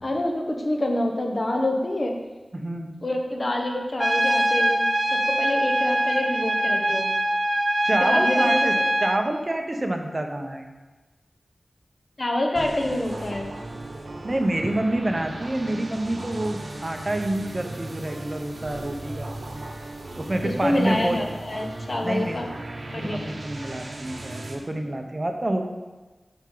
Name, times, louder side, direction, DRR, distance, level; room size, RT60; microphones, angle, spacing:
voice 1, 0.0-2.1 3.0-4.8 5.1-7.1 8.0-8.7 12.2-13.5 20.4-22.5 22.9-23.3, left 1 dB, 45° left, 2 dB, 1.1 m, -26 dB
voice 2, 2.5-2.9 7.8-8.7 9.0-10.6 14.2-19.3 20.2-21.2 22.0-22.4 22.9-25.6, right 1 dB, 35° right, 4 dB, 0.9 m, -27 dB
Trumpet, 4.0-9.2, right 1 dB, ahead, 0.6 m, -23 dB
sound 1, 12.6-24.6, right 2 dB, 70° right, 1.0 m, -37 dB
7.9 x 5.8 x 4.0 m, 1.2 s
wide cardioid pair, 70°, 0 cm